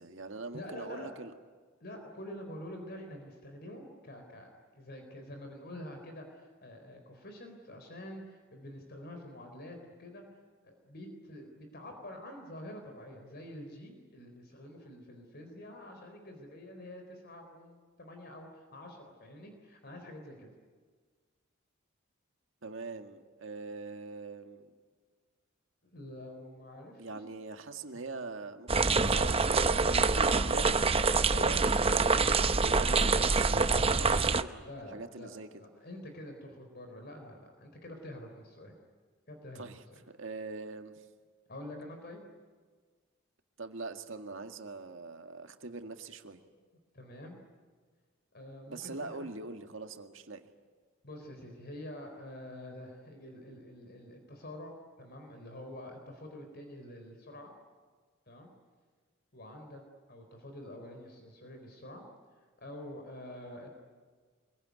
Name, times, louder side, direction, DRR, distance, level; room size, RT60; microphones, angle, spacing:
voice 1, 0.0-1.3 22.6-24.7 27.0-30.8 31.2-35.6 39.6-41.0 43.6-46.4 48.7-50.5, right 3 dB, 70° right, 6 dB, 1.9 m, -43 dB
voice 2, 0.5-1.1 1.8-10.2 10.6-20.5 25.8-27.2 27.9-28.0 31.3-31.6 34.6-38.7 39.3-39.6 41.5-42.2 46.9-47.4 48.3-49.3 51.0-57.5 58.3-58.5 59.3-59.8 60.1-62.0 62.6-63.8, left 1 dB, 50° left, 4 dB, 4.2 m, -47 dB
sound 1, 28.7-34.4, right 4 dB, 30° right, 0.8 m, -26 dB
25.5 x 22.5 x 9.7 m, 1.5 s
head